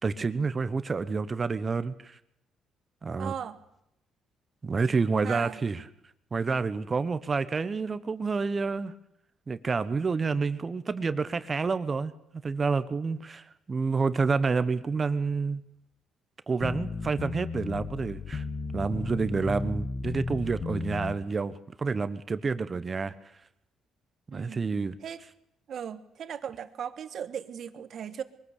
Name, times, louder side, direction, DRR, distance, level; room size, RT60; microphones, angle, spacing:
voice 1, 0.0-2.2 3.0-3.3 4.6-5.8 6.3-8.9 9.5-12.1 12.4-15.6 16.5-18.5 18.7-23.1 24.3-24.9, right 4 dB, 35° right, 14 dB, 1.1 m, -29 dB
voice 2, 3.2-3.6 5.2-5.6 24.3-24.6 25.0-25.2 25.7-28.2, right 8 dB, 60° right, 12 dB, 1.5 m, -37 dB
sound 1, 16.6-21.2, left 3 dB, 35° left, 2.0 m, -34 dB
22.5 x 14.5 x 8.4 m, 0.80 s
cardioid pair, 90°, 0 cm